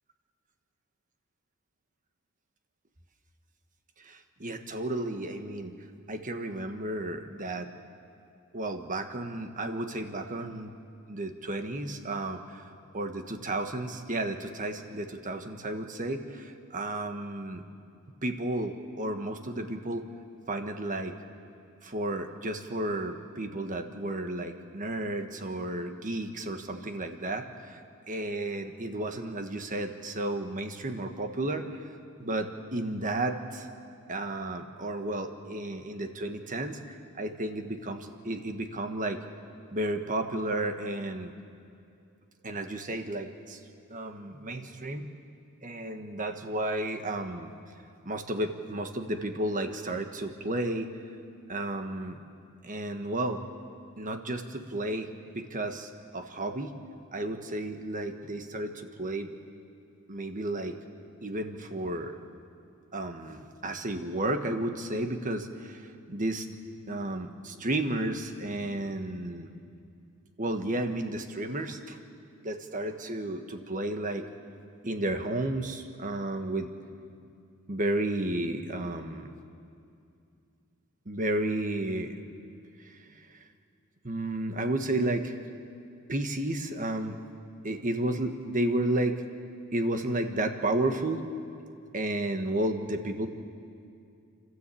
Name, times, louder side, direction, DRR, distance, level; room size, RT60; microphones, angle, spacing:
voice 1, 4.0-5.7 6.1-7.7 8.5-10.7 11.1-12.6 12.9-17.6 18.2-20.0 20.5-21.1 21.8-27.8 28.1-31.7 32.2-33.7 34.1-39.2 39.7-41.3 42.4-43.6 43.9-45.1 45.6-47.5 48.0-50.9 51.5-52.2 52.6-53.4 54.0-55.1 55.3-56.7 57.1-59.4 60.1-60.8 61.2-62.2 62.9-65.8 66.1-66.5 66.9-69.5 70.4-72.0 72.4-74.3 74.8-76.7 77.7-79.3 81.0-82.2 82.8-83.3 84.0-85.4 86.1-87.2 87.6-89.2 89.7-91.2 91.9-93.3, right 1 dB, 40° right, 6 dB, 1.4 m, -32 dB
29.5 x 13.0 x 8.5 m, 2.5 s
head